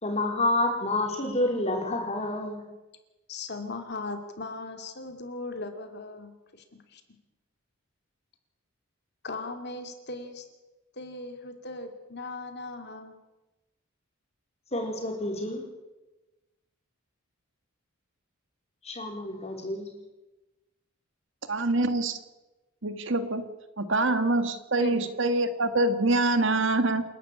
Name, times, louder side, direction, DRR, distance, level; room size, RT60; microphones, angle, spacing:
voice 1, 0.0-2.6 14.7-15.6 18.8-19.9, left 2 dB, 30° left, 2 dB, 4.4 m, -28 dB
voice 2, 3.3-6.6 6.9-7.0 9.2-10.4 10.9-13.1 24.8-25.0, left 3 dB, 50° left, 6 dB, 2.6 m, -38 dB
voice 3, 21.5-22.2 22.8-23.4 23.8-27.0, right 2 dB, 60° right, 10 dB, 1.7 m, -25 dB
28.0 x 11.5 x 8.7 m, 1.1 s
head